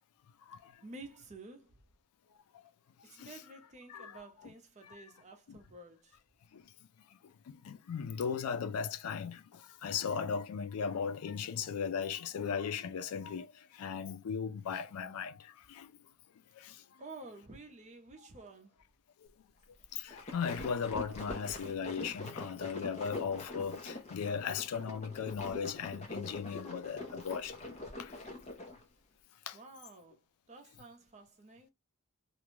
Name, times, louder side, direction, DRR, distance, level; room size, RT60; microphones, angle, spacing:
voice 1, 0.8-1.8 3.0-6.2 17.0-18.8 29.5-30.2 30.5-31.7, right 2 dB, 30° right, 0.6 m, -51 dB
voice 2, 7.5-15.9 16.6-16.8 19.9-27.5 28.0-28.1 29.5-29.6, left 6 dB, 80° left, 0.4 m, -37 dB
sound 1, 19.9-28.8, left 2 dB, 30° left, 0.6 m, -44 dB
2.5 x 2.2 x 3.0 m
head